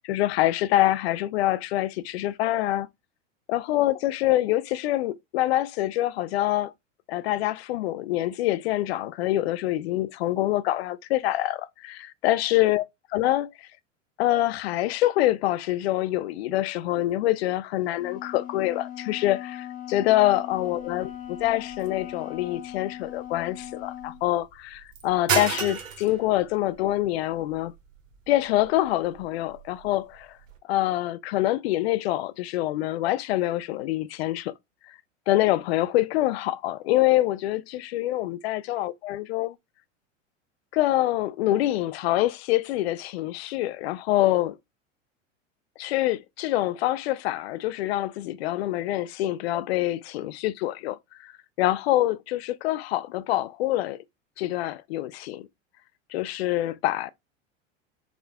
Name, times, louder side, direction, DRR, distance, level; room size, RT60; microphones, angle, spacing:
voice 1, 0.0-2.9 3.5-6.7 7.1-12.8 13.1-13.7 14.2-21.1 21.4-27.7 28.3-30.4 30.7-34.5 34.9-35.0 35.3-39.5 40.7-44.5 45.8-51.3 51.6-54.0 54.4-55.5 56.1-57.1, left 15 dB, 55° left, 0.4 m, -25 dB
Wind instrument woodwind instrument, 18.0-24.2, left 11 dB, 20° left, 1.1 m, -39 dB
sound 1, 20.5-30.6, right 6 dB, 80° right, 0.8 m, -36 dB
4.8 x 2.5 x 2.2 m
figure-of-eight pair, 90°, 38 cm